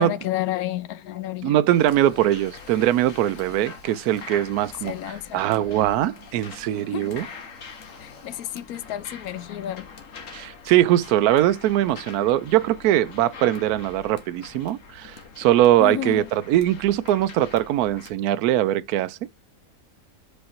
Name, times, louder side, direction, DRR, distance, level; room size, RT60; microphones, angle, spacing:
voice 1, 0.0-1.6 4.8-5.4 6.9-7.2 8.0-9.9 15.8-16.3, left 12 dB, 70° left, 1.0 m, -31 dB
voice 2, 1.4-4.9 5.3-7.3 10.3-19.2, right 13 dB, 70° right, 1.0 m, -21 dB
sound 1, 1.7-18.1, left 5 dB, 50° left, 1.5 m, -44 dB
5.1 x 4.6 x 4.3 m
omnidirectional pair, 1.8 m